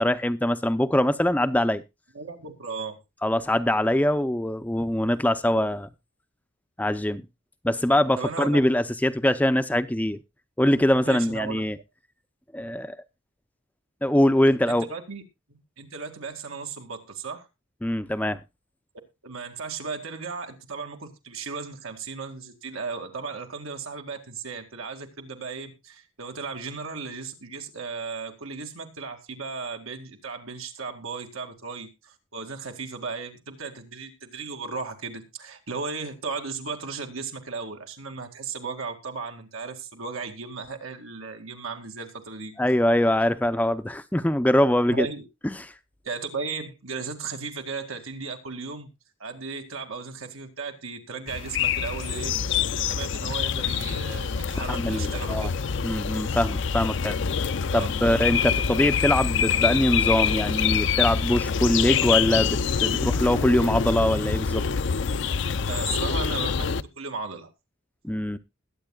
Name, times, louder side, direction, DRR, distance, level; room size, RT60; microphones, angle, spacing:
voice 1, 0.0-1.8 3.2-5.9 6.8-7.2 7.6-10.2 10.6-11.8 12.5-13.0 14.0-14.9 17.8-18.4 42.6-45.1 45.4-45.7 54.7-55.5 55.8-57.2 57.7-64.7 68.0-68.4, left 1 dB, 5° left, 0.5 m, -23 dB
voice 2, 2.1-3.0 8.2-8.6 11.0-11.6 14.7-15.2 15.5-17.5 19.2-42.6 44.9-45.2 46.0-48.9 49.2-52.4 52.7-55.5 57.7-57.9 65.7-67.5, right 4 dB, 85° right, 2.2 m, -35 dB
sound 1, 51.3-66.8, left 6 dB, 60° left, 0.5 m, -26 dB
20.5 x 8.7 x 2.3 m
head